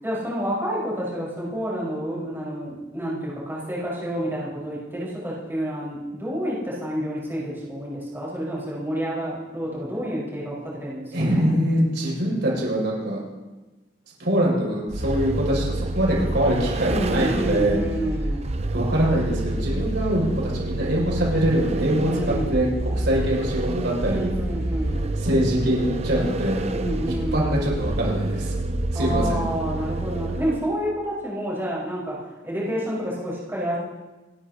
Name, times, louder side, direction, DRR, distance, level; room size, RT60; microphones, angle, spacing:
voice 1, 0.0-11.5 16.9-18.5 22.0-22.6 24.0-25.1 26.7-27.5 28.9-33.8, equal, 15° right, -7 dB, 5.1 m, -29 dB
voice 2, 11.1-13.2 14.2-17.8 18.7-24.3 25.2-26.6 27.3-28.5 28.9-29.4, equal, 70° right, -4 dB, 6.4 m, -23 dB
Vehicle, 14.9-30.8, right 2 dB, 35° right, 0.6 m, -28 dB
29.5 x 13.0 x 2.9 m, 1.1 s
head